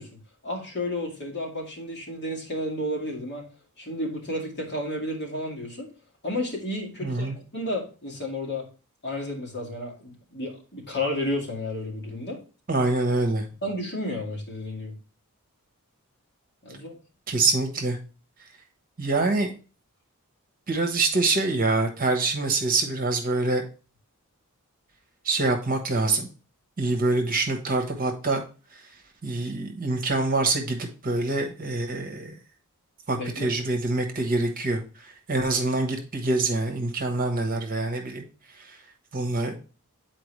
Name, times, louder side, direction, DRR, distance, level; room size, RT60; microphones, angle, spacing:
voice 1, 0.0-3.5 3.8-5.9 6.2-8.7 9.0-12.4 13.6-14.9 16.6-17.0 33.1-33.5, left 1 dB, 50° left, -1 dB, 2.0 m, -32 dB
voice 2, 7.0-7.4 12.7-13.4 17.3-18.0 19.0-19.5 20.7-23.6 25.2-26.3 26.8-28.4 28.7-28.8 29.2-32.3 33.1-38.2 38.5-38.8 39.1-39.5, right 3 dB, 40° right, 4 dB, 1.2 m, -25 dB
8.7 x 4.5 x 3.2 m, 0.34 s
head